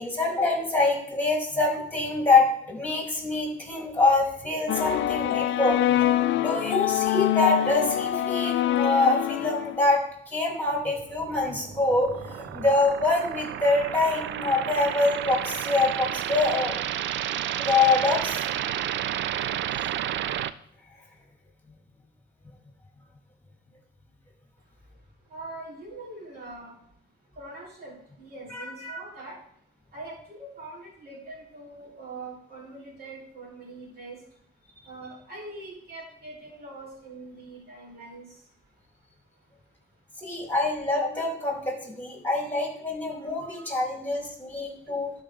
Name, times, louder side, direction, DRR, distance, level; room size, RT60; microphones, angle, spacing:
voice 1, 0.0-5.8 6.3-16.8 17.6-18.4 28.5-28.7 40.2-45.1, left 3 dB, 10° left, -1 dB, 3.5 m, -25 dB
sound 1, 4.7-9.9, left 12 dB, 70° left, 0.4 m, -25 dB
sound 2, 11.2-20.5, right 11 dB, 70° right, 0.4 m, -31 dB
voice 2, 25.0-26.9 27.3-29.4 29.9-34.4 34.8-38.7 39.3-39.5 40.4-40.5, right 2 dB, 50° right, -6 dB, 3.9 m, -43 dB
12.0 x 5.1 x 3.7 m, 0.69 s
cardioid pair, 90°, 20 cm